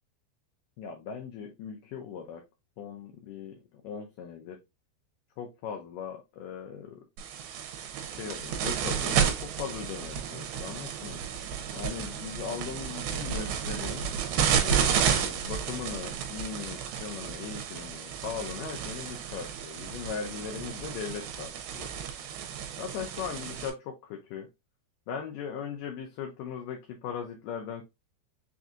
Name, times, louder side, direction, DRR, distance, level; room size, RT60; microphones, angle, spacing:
voice 1, 0.8-2.4 2.8-4.6 5.4-7.0 8.1-11.2 11.7-14.1 14.6-21.9 22.8-24.5 25.1-27.8, left 7 dB, 80° left, 1.9 m, -39 dB
sound 1, 7.2-23.7, right 8 dB, 80° right, 2.6 m, -32 dB
6.1 x 2.7 x 2.4 m
omnidirectional pair, 4.5 m